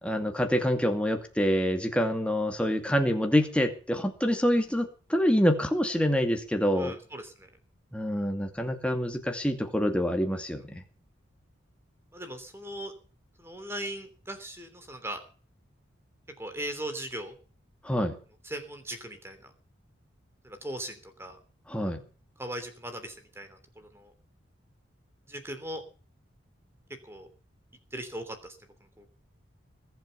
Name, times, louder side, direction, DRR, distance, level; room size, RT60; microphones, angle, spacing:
voice 1, 0.0-7.0 7.9-10.8 17.8-18.2 21.7-22.0, equal, 5° left, 4 dB, 2.3 m, -26 dB
voice 2, 6.7-7.5 12.1-12.9 13.4-15.2 16.4-17.3 18.4-19.5 20.4-21.4 22.4-24.1 25.3-25.8 27.0-27.3 27.9-28.6 29.0-29.1, right 1 dB, 10° right, 8 dB, 3.1 m, -39 dB
21.0 x 8.1 x 7.0 m, 0.40 s
head